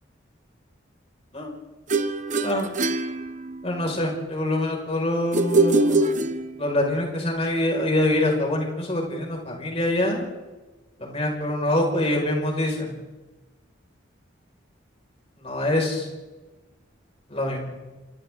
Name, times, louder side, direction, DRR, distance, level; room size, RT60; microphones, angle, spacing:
sound 1, 1.9-3.8 5.3-6.9, right 2 dB, 40° right, 1.3 m, -23 dB
voice 1, 3.6-6.2 6.6-10.3 11.0-12.9 15.4-16.1 17.3-17.7, left 1 dB, 30° left, 0 dB, 5.6 m, -25 dB
27.5 x 27.5 x 3.9 m, 1.2 s
head